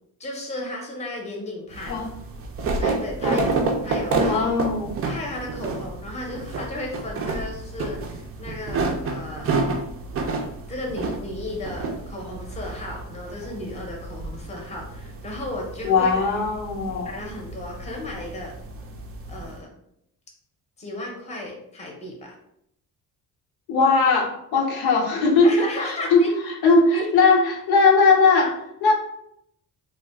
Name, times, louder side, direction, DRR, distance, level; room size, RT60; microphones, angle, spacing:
voice 1, 0.2-2.0 2.8-3.4 3.8-4.5 5.1-9.5 10.7-16.1 17.0-18.5 19.3-19.7 20.8-22.4 25.4-26.3 26.9-27.1, left 1 dB, 20° left, 0 dB, 0.7 m, -34 dB
sound 1, 1.7-19.6, right 3 dB, 40° right, 0.4 m, -30 dB
voice 2, 4.2-4.9 15.8-17.1 23.7-25.5 25.8-26.3 26.6-28.9, left 4 dB, 85° left, 1 dB, 0.7 m, -19 dB
2.4 x 2.2 x 3.4 m, 0.77 s
cardioid pair, 125°, 36 cm